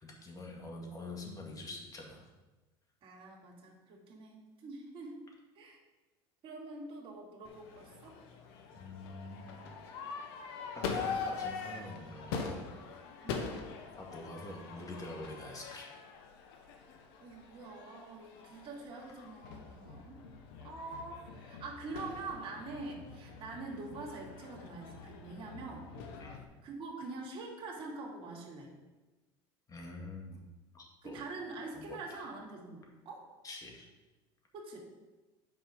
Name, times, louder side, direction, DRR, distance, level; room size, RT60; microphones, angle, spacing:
voice 1, 0.0-2.3 8.7-9.5 10.7-12.7 14.0-15.9 26.2-26.5 29.7-30.4 30.7-31.2 31.7-32.2 33.4-33.9, left 2 dB, 30° left, 0 dB, 2.0 m, -46 dB
voice 2, 3.0-5.2 5.5-5.8 6.4-8.2 13.2-13.6 17.2-20.2 20.6-25.9 26.6-28.7 31.0-33.3 34.5-34.8, right 3 dB, 45° right, -3 dB, 2.4 m, -45 dB
Crowd / Fireworks, 7.4-26.4, left 5 dB, 85° left, 1.0 m, -43 dB
8.4 x 5.3 x 5.0 m, 1.2 s
supercardioid pair, 110°, 13 cm